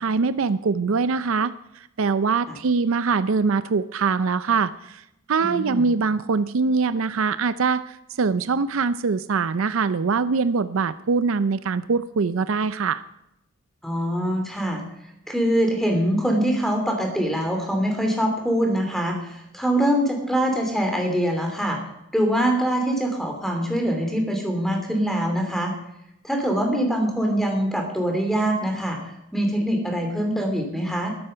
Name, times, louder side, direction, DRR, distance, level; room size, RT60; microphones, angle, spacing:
voice 1, 0.0-1.5 2.0-13.0, right 4 dB, 65° right, 14 dB, 0.5 m, -23 dB
voice 2, 5.4-5.9 13.8-14.8 15.3-21.8 22.1-25.7 26.2-29.0 29.3-31.1, equal, ahead, 3 dB, 2.9 m, -23 dB
12.5 x 12.0 x 5.7 m, 0.83 s
head